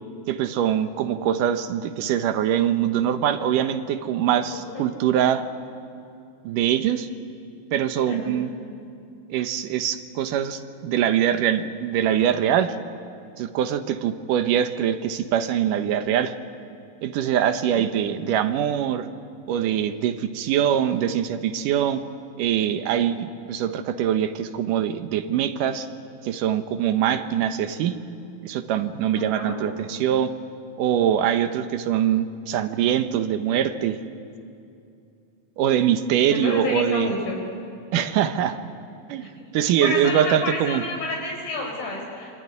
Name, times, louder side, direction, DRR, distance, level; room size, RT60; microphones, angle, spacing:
voice 1, 0.3-5.4 6.4-7.1 7.7-8.5 9.3-12.7 13.4-16.3 17.0-19.1 19.5-22.0 22.4-25.9 26.2-28.0 28.4-30.3 30.8-34.0 35.6-37.1 37.9-38.6 39.1-39.3 39.5-40.8, right 10 dB, 70° right, 9 dB, 2.5 m, -23 dB
voice 2, 17.6-18.2 29.2-29.6 36.3-37.4 39.2-39.4 39.8-42.4, left 2 dB, 75° left, -1 dB, 7.0 m, -30 dB
25.5 x 24.0 x 9.6 m, 2.5 s
omnidirectional pair, 4.2 m